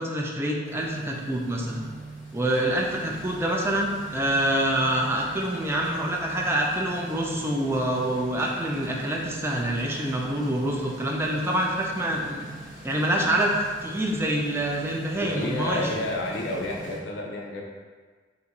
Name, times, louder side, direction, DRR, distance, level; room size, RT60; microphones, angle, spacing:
voice 1, 0.0-1.9 2.3-12.5 12.8-15.9, right 1 dB, 15° right, -1 dB, 0.3 m, -26 dB
sound 1, 0.6-17.0, right 1 dB, 50° right, 1.1 m, -42 dB
voice 2, 15.2-17.6, left 1 dB, 70° left, -1 dB, 0.5 m, -30 dB
2.7 x 2.5 x 4.0 m, 1.5 s
head